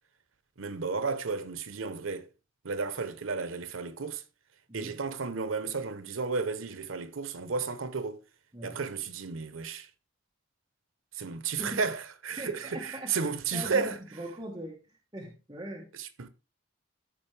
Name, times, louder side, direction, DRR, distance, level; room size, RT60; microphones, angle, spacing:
voice 1, 0.6-2.3 2.6-4.2 4.7-8.2 8.6-9.9 11.2-14.0 16.0-16.3, right 4 dB, 85° right, 0.8 m, -33 dB
voice 2, 11.6-11.9 12.4-15.9, equal, 20° right, 1.4 m, -41 dB
13.5 x 5.2 x 3.3 m
head